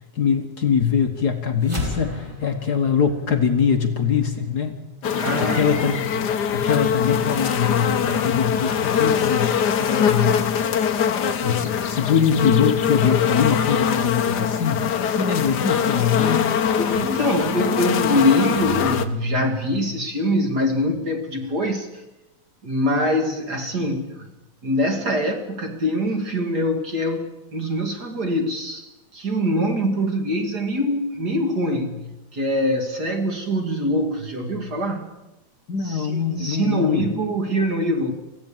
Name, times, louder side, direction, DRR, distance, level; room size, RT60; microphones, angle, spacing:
voice 1, 0.1-4.8 5.4-6.0 6.5-9.5 9.9-10.4 11.4-14.8 15.1-16.6 35.7-37.1, left 7 dB, 50° left, 6 dB, 1.2 m, -22 dB
sound 1, 1.6-6.2, left 1 dB, 15° right, 3.9 m, -34 dB
sound 2, 5.0-19.1, left 7 dB, 75° left, 0.9 m, -22 dB
voice 2, 5.2-6.2 16.8-21.9 22.6-24.3 24.6-35.1 35.8-38.1, equal, 35° right, 4 dB, 2.3 m, -24 dB
24.0 x 16.0 x 7.4 m, 1.0 s
omnidirectional pair, 3.5 m